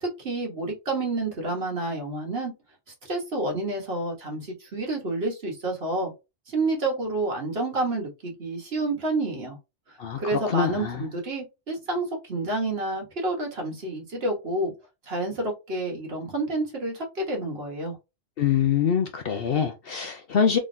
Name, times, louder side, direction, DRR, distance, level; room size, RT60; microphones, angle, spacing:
voice 1, 0.0-2.5 3.1-6.1 6.5-9.6 9.9-14.7 15.1-18.0, right 2 dB, 50° right, 1.4 m, -29 dB
voice 2, 10.0-11.0 18.4-20.6, left 7 dB, 60° left, 0.7 m, -24 dB
3.7 x 3.1 x 2.6 m
omnidirectional pair, 1.3 m